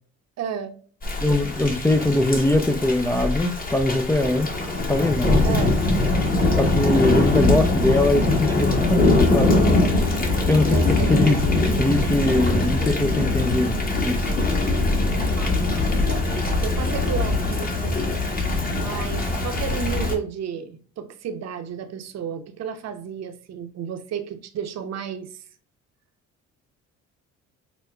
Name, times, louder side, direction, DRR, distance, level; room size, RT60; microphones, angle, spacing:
voice 1, 0.4-0.7 5.4-5.7 10.7-11.2 15.4-15.5 15.9-16.2 16.6-18.2 18.7-25.4, right 7 dB, 55° right, 0.7 m, -32 dB
Thunder / Rain, 1.0-20.1, left 2 dB, 30° left, 1.0 m, -22 dB
voice 2, 1.2-4.5 4.9-5.6 6.6-9.6 10.5-10.8 11.1-11.4 11.8-14.3, left 2 dB, 5° left, 0.4 m, -22 dB
6.0 x 2.2 x 2.3 m
cardioid pair, 85°, 31 cm